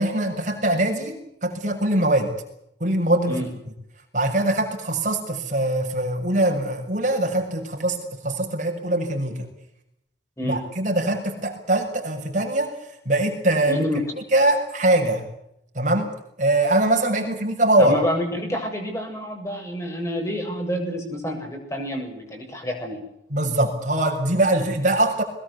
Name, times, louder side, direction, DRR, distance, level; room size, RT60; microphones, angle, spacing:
voice 1, 0.0-2.3 2.8-3.5 4.1-9.5 10.4-13.8 14.3-15.3 15.7-16.1 16.4-18.0 23.3-25.2, right 1 dB, 40° right, 3 dB, 6.8 m, -22 dB
voice 2, 13.7-14.0 17.9-23.0, equal, 15° left, 2 dB, 7.7 m, -28 dB
22.5 x 21.0 x 8.3 m, 0.79 s
head